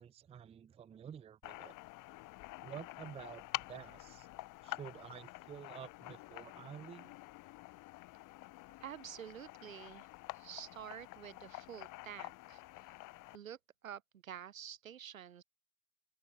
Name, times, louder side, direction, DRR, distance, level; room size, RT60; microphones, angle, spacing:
voice 1, 0.0-1.7 2.6-4.3 4.6-7.1, right 8 dB, 15° right, 0.5 m, -50 dB
sound 1, 1.4-13.4, left 20 dB, 50° left, 2.1 m, -48 dB
voice 2, 8.8-10.1 10.3-12.9 13.3-13.6 13.8-15.4, right 9 dB, 90° right, 2.2 m, -49 dB
open air
hypercardioid pair, 85°, 39 cm